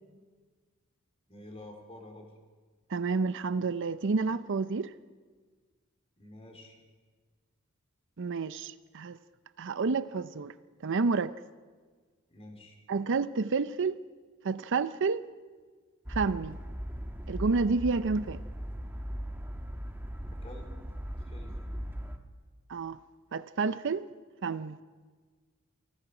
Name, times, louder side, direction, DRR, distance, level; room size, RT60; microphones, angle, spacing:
voice 1, 1.3-2.3 6.2-6.8 12.3-12.8 20.3-20.7 21.3-21.7, left 1 dB, 30° left, 4.0 m, -49 dB
voice 2, 2.9-4.9 8.2-9.2 9.6-10.5 10.8-11.3 12.9-14.0 14.4-15.2 16.1-16.6 17.3-18.4 22.7-23.0 23.3-24.1 24.4-24.8, right 4 dB, 60° right, 0.6 m, -29 dB
sound 1, 16.1-22.2, equal, 10° right, 1.3 m, -38 dB
29.0 x 19.5 x 4.9 m
head